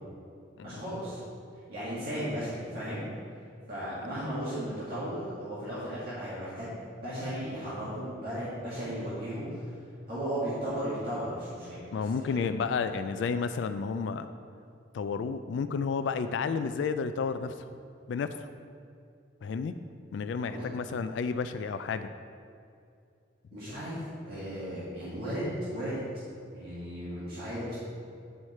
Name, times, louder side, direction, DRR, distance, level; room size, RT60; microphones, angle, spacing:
voice 1, 0.6-1.2 1.7-3.0 3.7-9.6 10.1-11.8 12.2-12.4 20.5-20.7 23.5-24.0 24.2-26.0 26.5-27.7, equal, 55° right, -10 dB, 1.9 m, -35 dB
voice 2, 11.9-14.3 14.9-17.7 18.1-18.5 19.4-19.7 20.1-22.1, left 5 dB, 70° left, 11 dB, 0.3 m, -31 dB
9.3 x 4.8 x 4.2 m, 2.5 s
head